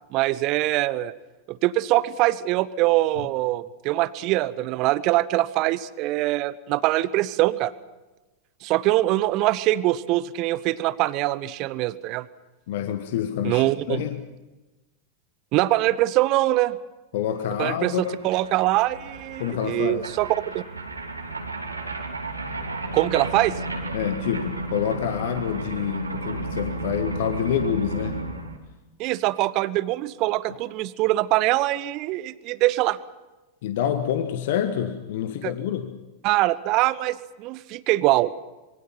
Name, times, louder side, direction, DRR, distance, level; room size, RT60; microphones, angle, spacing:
voice 1, 0.1-1.1 1.5-7.7 8.6-12.3 13.4-14.0 15.5-16.8 17.6-17.9 18.2-20.6 22.9-23.6 29.0-33.0 35.4-35.5 36.2-38.3, right 17 dB, 40° right, 18 dB, 0.9 m, -23 dB
voice 2, 12.7-14.2 17.1-18.2 19.4-20.1 23.9-28.2 33.6-36.0, left 9 dB, 55° left, 8 dB, 1.4 m, -27 dB
sound 1, 17.4-17.5 17.7-28.6, right 2 dB, 85° right, 3.1 m, -33 dB
26.5 x 22.5 x 5.9 m, 1.1 s
figure-of-eight pair, 90°, 0 cm